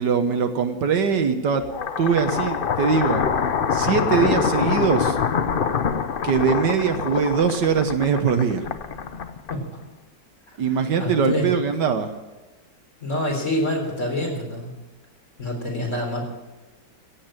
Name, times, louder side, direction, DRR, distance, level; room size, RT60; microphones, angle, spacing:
voice 1, 0.0-1.6 2.0-3.2 3.7-5.2 6.2-8.7 10.6-12.1, right 6 dB, 70° right, 7 dB, 1.7 m, -21 dB
sound 1, 1.6-9.9, left 6 dB, 65° left, 0.5 m, -25 dB
voice 2, 10.7-11.5 13.0-14.8 15.4-16.3, left 1 dB, 40° left, 0 dB, 4.3 m, -27 dB
16.0 x 8.7 x 8.9 m, 1.1 s
omnidirectional pair, 2.0 m